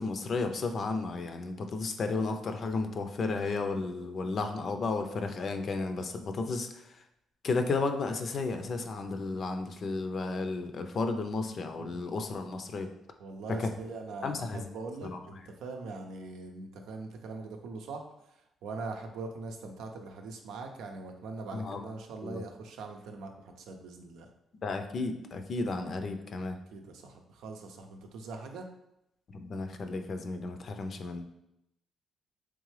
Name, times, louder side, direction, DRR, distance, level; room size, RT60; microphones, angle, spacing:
voice 1, 0.0-6.8 7.4-12.9 13.6-13.7 14.2-14.7 15.0-15.2 21.5-21.8 22.2-22.4 24.5-26.6 29.3-31.2, left 3 dB, 50° left, 6 dB, 0.5 m, -33 dB
voice 2, 13.2-18.0 18.6-24.3 26.7-28.7, right 3 dB, 85° right, 4 dB, 0.5 m, -42 dB
3.7 x 3.2 x 3.2 m, 0.83 s
cardioid pair, 90°, 0 cm